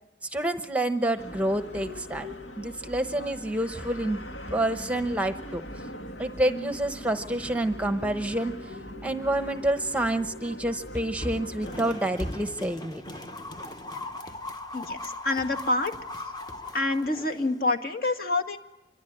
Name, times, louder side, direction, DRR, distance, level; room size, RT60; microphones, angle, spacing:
voice 1, 0.2-2.3 2.6-4.2 4.5-5.6 6.2-8.8 9.0-13.0, right 1 dB, 10° right, 8 dB, 0.9 m, -28 dB
sound 1, 1.2-12.0, left 1 dB, 80° left, 2.5 m, -41 dB
Wood, 8.9-9.0 9.6-9.7 10.9-12.7 15.4-16.2 16.5-16.6, equal, 35° left, 3.7 m, -39 dB
sound 2, 11.6-17.6, left 2 dB, 20° left, 1.1 m, -39 dB
voice 2, 14.7-15.9 16.2-16.3 16.7-18.6, left 2 dB, 50° left, 5 dB, 2.1 m, -27 dB
26.0 x 23.5 x 9.8 m, 0.90 s
head